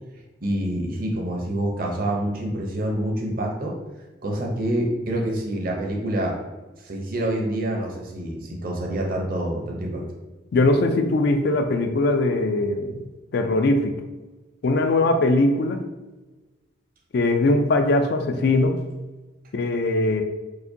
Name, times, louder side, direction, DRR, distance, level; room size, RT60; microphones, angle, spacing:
voice 1, 0.4-3.8 4.2-6.4 6.8-10.0, right 1 dB, 50° right, 0 dB, 0.7 m, -27 dB
voice 2, 10.5-13.0 13.3-14.0 14.6-15.8 17.1-18.9 19.5-20.2, left 2 dB, 55° left, 6 dB, 0.3 m, -21 dB
4.7 x 2.2 x 2.7 m, 1.1 s
head